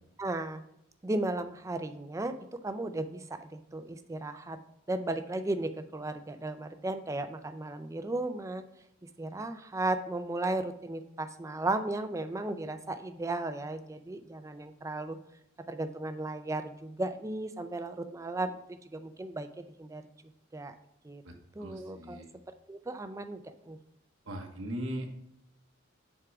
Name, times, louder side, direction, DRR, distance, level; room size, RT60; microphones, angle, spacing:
voice 1, 0.2-0.6 1.0-4.6 4.9-8.6 9.2-15.2 15.7-20.0 20.5-20.7 21.0-21.2 21.6-22.2 22.7-23.8, right 2 dB, 15° right, 10 dB, 0.4 m, -35 dB
voice 2, 21.6-22.3 24.2-25.1, equal, 90° right, 2 dB, 1.2 m, -38 dB
7.5 x 3.7 x 4.7 m, 0.77 s
head